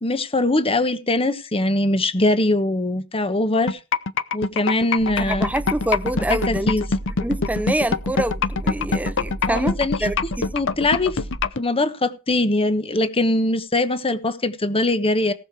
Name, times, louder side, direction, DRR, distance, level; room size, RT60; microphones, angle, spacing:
voice 1, 0.0-3.8 4.3-5.5 6.3-6.9 9.5-10.1 10.5-11.2 11.6-15.3, left 2 dB, 25° left, 1.2 m, -22 dB
sound 1, 3.7-11.6, left 4 dB, 60° left, 0.7 m, -23 dB
sound 2, 5.0-11.5, right 1 dB, 35° right, 1.0 m, -34 dB
voice 2, 5.2-6.8 7.2-10.5, right 1 dB, 5° right, 0.7 m, -26 dB
18.5 x 6.6 x 4.7 m
head